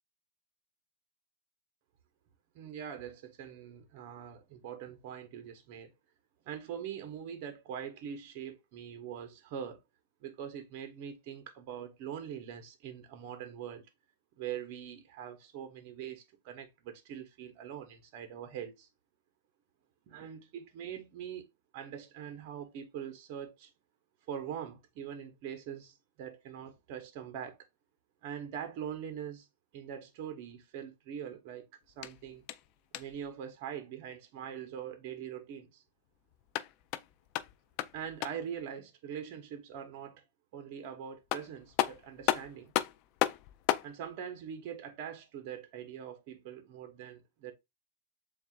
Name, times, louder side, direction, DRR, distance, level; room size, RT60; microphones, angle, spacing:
voice 1, 2.5-5.9 6.4-9.8 10.2-13.9 14.4-18.9 20.1-21.5 21.7-23.7 24.3-27.7 28.2-29.5 29.7-31.7 32.0-32.4 32.9-35.8 37.9-40.2 40.5-42.7 43.8-47.5, right 8 dB, 50° right, 0.9 m, -43 dB
sound 1, 31.9-33.3 36.3-38.6 40.8-40.9 41.3-43.9, left 14 dB, 45° left, 0.3 m, -34 dB
7.1 x 2.4 x 2.3 m
supercardioid pair, 135°, 0 cm